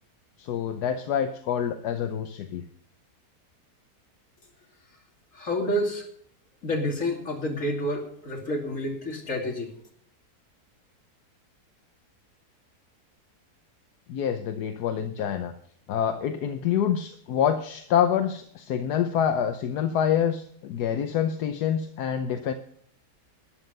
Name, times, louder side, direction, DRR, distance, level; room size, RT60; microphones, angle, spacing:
voice 1, 0.4-2.6 14.1-15.5 15.9-22.5, left 9 dB, 80° left, 8 dB, 1.3 m, -26 dB
voice 2, 5.3-6.1 6.6-9.7, left 1 dB, 55° left, 1 dB, 3.0 m, -29 dB
13.0 x 10.0 x 6.6 m, 0.63 s
omnidirectional pair, 1.7 m